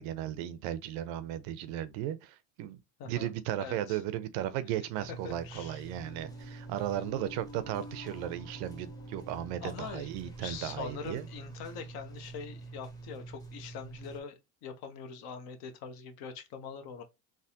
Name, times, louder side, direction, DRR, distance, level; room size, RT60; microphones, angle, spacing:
voice 1, 0.0-2.8 3.1-11.3, right 12 dB, 60° right, 0.6 m, -36 dB
voice 2, 3.0-3.3 3.6-4.0 5.1-5.8 9.6-10.1 10.4-17.0, left 6 dB, 60° left, 0.9 m, -43 dB
sound 1, 4.9-14.2, right 3 dB, 10° left, 0.7 m, -47 dB
sound 2, 6.0-11.3, left 2 dB, 75° left, 1.6 m, -51 dB
3.4 x 2.1 x 2.7 m
supercardioid pair, 110°, 42 cm